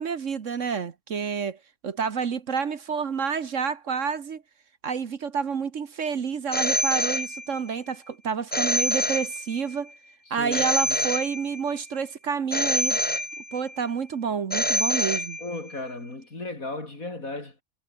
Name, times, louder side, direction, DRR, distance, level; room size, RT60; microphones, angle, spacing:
voice 1, 0.0-1.6 1.8-4.4 4.8-9.9 10.3-13.0 13.5-15.4, right 6 dB, 55° right, 1.5 m, -29 dB
Telephone, 6.5-7.8 8.5-9.8 10.5-11.8 12.5-13.8 14.5-15.8, left 1 dB, 5° left, 1.1 m, -26 dB
voice 2, 10.3-10.7 15.4-17.5, left 2 dB, 65° left, 5.7 m, -35 dB
omnidirectional pair, 1.6 m